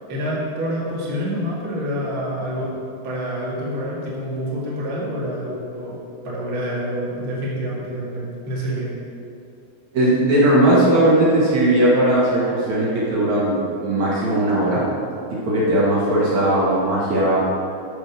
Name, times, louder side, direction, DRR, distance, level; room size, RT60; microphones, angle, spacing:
voice 1, 0.1-2.7 3.0-6.0 6.2-8.9, equal, 35° right, -7 dB, 2.6 m, -27 dB
voice 2, 9.9-14.8 15.3-17.4, right 1 dB, 55° right, -8 dB, 3.0 m, -18 dB
13.5 x 5.3 x 6.4 m, 2.7 s
omnidirectional pair, 4.3 m